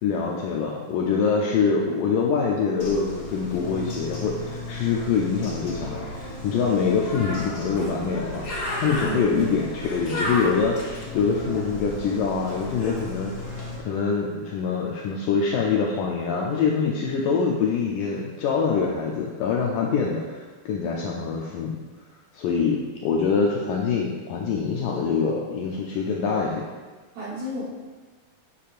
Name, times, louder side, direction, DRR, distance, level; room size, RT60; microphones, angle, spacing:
voice 1, 0.0-8.5 8.8-21.8 22.3-26.6, left 5 dB, 80° left, -1 dB, 1.9 m, -25 dB
Bird, 2.8-13.8, left 1 dB, 60° left, 1.0 m, -33 dB
voice 2, 9.0-9.4 27.1-27.6, right 1 dB, 60° right, -6 dB, 2.0 m, -32 dB
8.3 x 7.3 x 2.5 m, 1.4 s
omnidirectional pair, 4.3 m